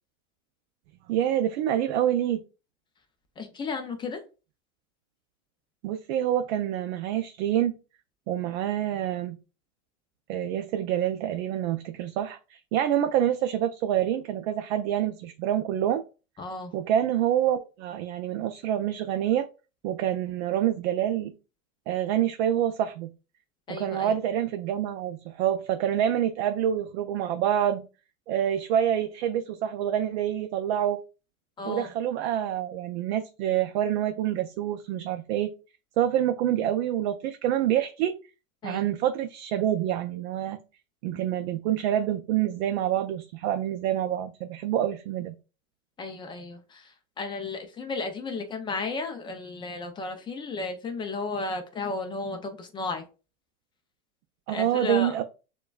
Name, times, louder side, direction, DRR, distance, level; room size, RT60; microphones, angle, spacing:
voice 1, 1.1-2.4 5.8-7.7 8.3-9.4 10.3-16.0 16.7-19.5 19.8-21.3 21.9-23.1 23.7-27.8 28.3-31.0 31.7-35.5 36.0-38.2 38.6-40.6 41.0-45.3 54.5-55.2, right 11 dB, 55° right, 0.5 m, -27 dB
voice 2, 3.4-4.2 16.4-16.7 23.7-24.1 31.6-31.9 38.6-38.9 41.2-41.3 46.0-53.0 54.5-55.1, left 3 dB, 15° left, 0.3 m, -34 dB
6.6 x 2.3 x 2.3 m
hypercardioid pair, 115°, 40 cm